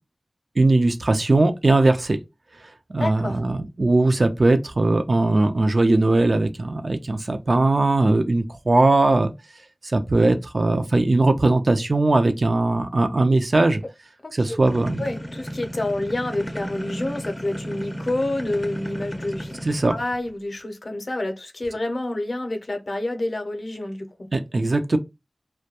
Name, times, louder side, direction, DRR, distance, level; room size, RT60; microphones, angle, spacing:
voice 1, 0.6-2.2 2.9-9.3 9.9-13.8 14.3-15.1 19.6-20.0 24.3-25.0, right 2 dB, 65° right, 0.4 m, -19 dB
voice 2, 3.0-3.4 14.2-14.6 15.0-19.6 19.9-24.3, left 1 dB, 65° left, 0.5 m, -28 dB
sound 1, 14.7-20.3, equal, 15° left, 0.4 m, -34 dB
2.2 x 2.2 x 2.8 m
wide cardioid pair, 45°, 0 cm